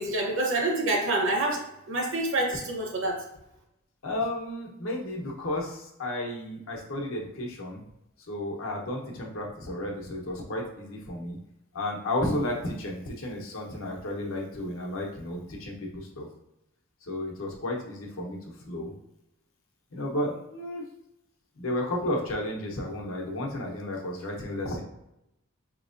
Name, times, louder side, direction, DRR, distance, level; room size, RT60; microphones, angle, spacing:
voice 1, 0.0-3.2, right 2 dB, 65° right, 1 dB, 0.9 m, -27 dB
voice 2, 4.0-7.8 8.3-11.4 11.7-16.3 17.0-18.4 18.6-18.9 19.9-20.9 21.6-24.8, left 1 dB, 80° left, 0 dB, 0.9 m, -32 dB
4.3 x 3.0 x 2.5 m, 0.86 s
head